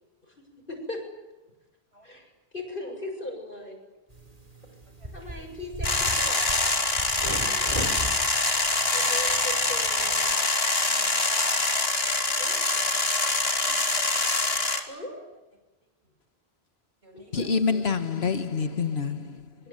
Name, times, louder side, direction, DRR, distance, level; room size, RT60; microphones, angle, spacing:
voice 1, 0.2-1.0 2.0-3.8 5.1-7.2 7.5-7.7 8.8-10.3 12.4-12.5 14.9-15.3 17.1-18.3 19.6-19.7, left 1 dB, 55° left, 7.8 m, -39 dB
sound 1, 4.1-10.3, right 1 dB, 35° right, 4.0 m, -38 dB
voice 2, 5.0-5.4 8.8-9.4 9.9-10.3 10.8-13.0 13.7-13.8 14.9-15.0 17.0-17.6, equal, 90° right, 7.8 m, -55 dB
sound 2, 5.8-14.8, left 2 dB, 70° left, 3.0 m, -25 dB
voice 3, 17.3-19.4, left 5 dB, 90° left, 1.7 m, -26 dB
24.5 x 24.5 x 9.1 m
omnidirectional pair, 1.0 m